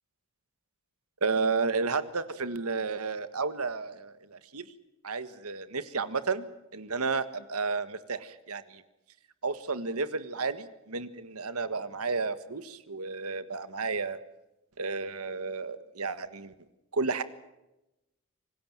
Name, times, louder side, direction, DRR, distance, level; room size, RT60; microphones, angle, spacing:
voice 1, 1.2-4.6 5.0-8.8 9.4-14.2 14.8-16.5 16.9-17.2, right 4 dB, 90° right, 12 dB, 1.6 m, -32 dB
26.5 x 19.0 x 7.5 m, 0.95 s
head